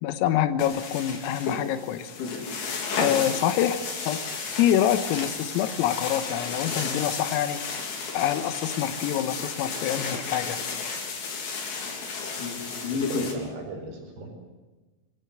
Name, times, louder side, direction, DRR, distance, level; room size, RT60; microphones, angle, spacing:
voice 1, 0.0-2.1 3.0-4.2 4.6-7.6 8.1-10.6, left 11 dB, 90° left, 10 dB, 3.7 m, -26 dB
sound 1, 0.6-13.3, left 4 dB, 65° left, 6.1 m, -32 dB
voice 2, 12.9-14.3, right 3 dB, 55° right, 4 dB, 6.6 m, -37 dB
27.0 x 17.0 x 7.9 m, 1.2 s
omnidirectional pair, 6.0 m